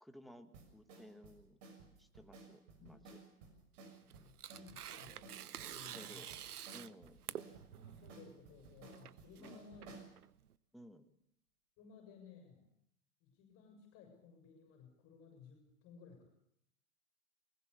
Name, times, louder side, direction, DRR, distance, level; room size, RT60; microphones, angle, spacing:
voice 1, 0.0-1.6 2.0-3.2 5.8-6.3 6.7-7.2 9.4-9.6 10.7-11.1, equal, ahead, 8 dB, 1.2 m, -57 dB
sound 1, 0.5-10.1, right 3 dB, 50° right, 6.4 m, -57 dB
Tearing, 3.7-10.5, right 10 dB, 75° right, 0.9 m, -49 dB
voice 2, 4.1-5.3 5.7-6.3 7.2-7.4 7.7-10.0 11.8-12.7 13.2-16.3, left 6 dB, 30° left, 3 dB, 6.8 m, -59 dB
21.0 x 19.5 x 6.9 m, 0.75 s
hypercardioid pair, 125°, 45 cm